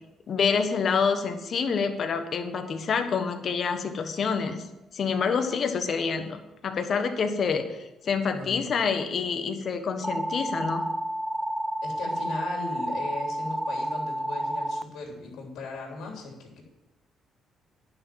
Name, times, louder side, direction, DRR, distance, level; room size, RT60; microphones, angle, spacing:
voice 1, 0.3-4.7 4.9-10.8, left 5 dB, 55° left, 7 dB, 1.3 m, -27 dB
voice 2, 8.3-8.8 11.8-16.6, left 3 dB, 80° left, 0 dB, 3.2 m, -38 dB
sound 1, 10.0-14.8, equal, ahead, 0.5 m, -30 dB
10.5 x 6.1 x 7.5 m, 0.96 s
cardioid pair, 90°, 0 cm